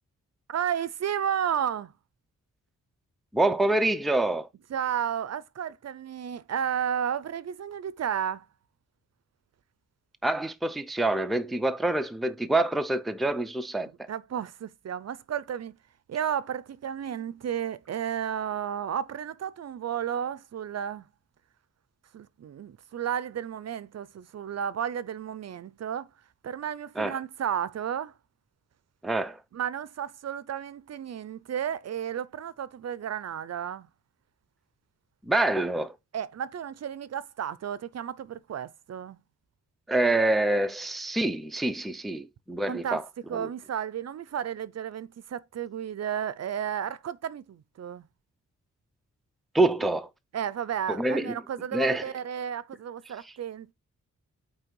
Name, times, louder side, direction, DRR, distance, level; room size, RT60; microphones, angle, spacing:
voice 1, 0.5-1.9 4.7-8.5 14.1-15.8 16.1-21.1 22.1-26.1 26.4-28.1 29.5-33.9 36.1-39.2 42.7-43.0 43.3-48.1 50.3-53.7, right 9 dB, 55° right, 0.5 m, -32 dB
voice 2, 3.3-4.5 10.2-14.1 27.0-27.2 29.0-29.4 35.2-35.9 39.9-43.0 43.3-43.5 49.5-50.1 50.9-51.4 51.7-52.0, right 2 dB, ahead, 0.5 m, -26 dB
8.9 x 3.3 x 4.5 m
wide cardioid pair, 175°, 30 cm